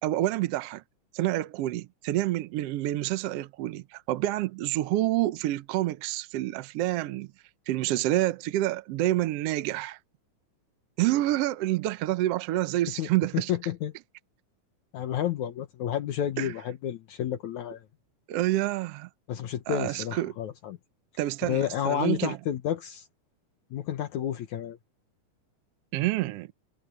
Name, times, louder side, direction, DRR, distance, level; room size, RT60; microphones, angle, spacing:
voice 1, 0.0-0.8 1.1-7.3 7.7-10.0 11.0-13.5 16.4-16.5 18.3-19.1 19.7-20.3 21.2-22.4 25.9-26.5, right 15 dB, 75° right, 1.5 m, -28 dB
voice 2, 13.3-13.9 14.9-17.9 19.3-20.8 21.4-23.1 23.7-24.8, left 10 dB, 70° left, 2.5 m, -30 dB
omnidirectional pair, 3.6 m